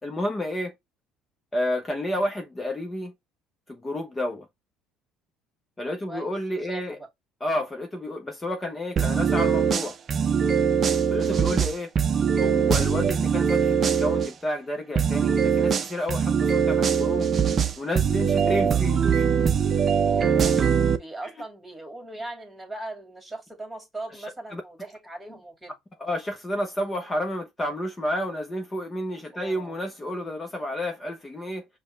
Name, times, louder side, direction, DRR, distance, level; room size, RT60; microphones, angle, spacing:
voice 1, 0.0-0.7 1.5-3.1 3.7-4.5 5.8-7.0 7.4-10.0 11.1-11.9 12.3-17.3 17.8-19.3 24.5-24.6 26.0-31.7, left 1 dB, 20° left, 0.9 m, -30 dB
voice 2, 6.6-7.1 20.1-20.6 21.0-25.7 29.3-29.8, right 2 dB, 10° right, 2.3 m, -39 dB
sound 1, 9.0-14.3 15.0-21.0, right 7 dB, 40° right, 0.6 m, -22 dB
5.1 x 2.4 x 3.2 m
cardioid pair, 105°, 0 cm